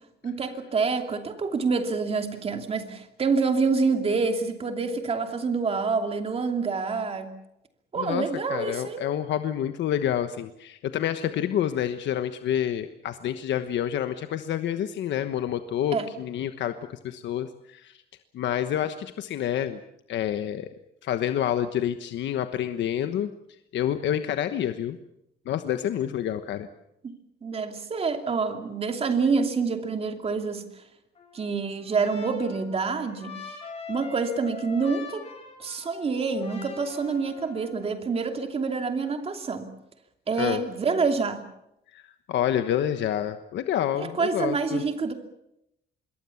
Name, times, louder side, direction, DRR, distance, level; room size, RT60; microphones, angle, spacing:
voice 1, 0.2-7.3 7.9-9.1 15.9-16.1 27.0-27.1 27.4-30.7 31.3-33.4 33.9-35.3 35.6-39.7 40.3-41.4 44.0-45.1, right 4 dB, 35° right, 6 dB, 2.8 m, -27 dB
voice 2, 8.0-18.0 18.3-19.8 20.1-20.7 21.0-23.3 23.7-25.0 25.5-26.7 40.4-40.6 41.9-44.8, left 10 dB, 80° left, 9 dB, 1.2 m, -28 dB
Trumpet, 31.1-37.9, left 4 dB, 35° left, 7.9 m, -43 dB
26.0 x 22.0 x 7.2 m, 0.83 s
cardioid pair, 160°, 18 cm